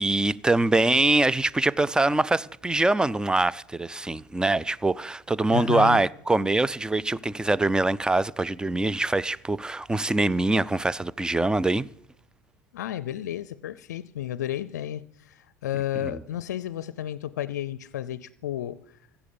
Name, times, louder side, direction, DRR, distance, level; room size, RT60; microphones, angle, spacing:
voice 1, 0.0-11.9 16.1-16.2, right 2 dB, 10° right, 0.4 m, -24 dB
voice 2, 5.5-6.0 12.7-18.8, left 12 dB, 85° left, 0.4 m, -32 dB
15.0 x 7.1 x 8.6 m
hypercardioid pair, 85°, 9 cm